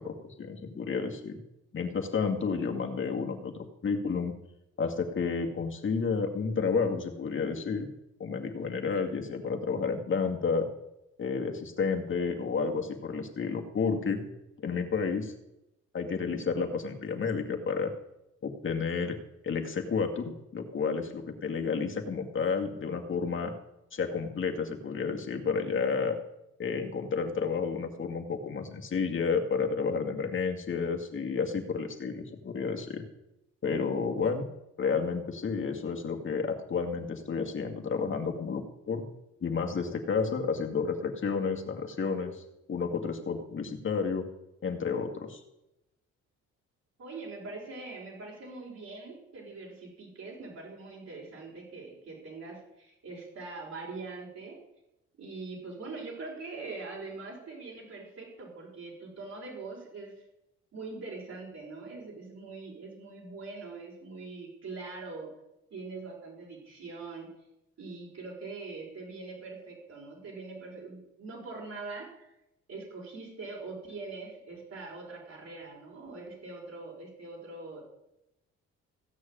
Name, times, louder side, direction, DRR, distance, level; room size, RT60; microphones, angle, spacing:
voice 1, 0.0-1.4 1.7-4.3 4.8-7.9 8.2-10.7 11.2-14.2 14.6-15.3 15.9-17.9 18.4-19.2 19.4-23.5 23.9-26.2 26.6-33.0 33.6-34.5 34.8-39.0 39.4-44.3 44.6-45.4, left 5 dB, 40° left, 4 dB, 2.1 m, -31 dB
voice 2, 47.0-54.6 55.2-60.1 60.7-65.3 65.7-67.3 67.8-72.3 72.7-77.8, right 3 dB, 55° right, -3 dB, 5.2 m, -43 dB
16.0 x 6.4 x 8.8 m, 0.88 s
cardioid pair, 90°, 30 cm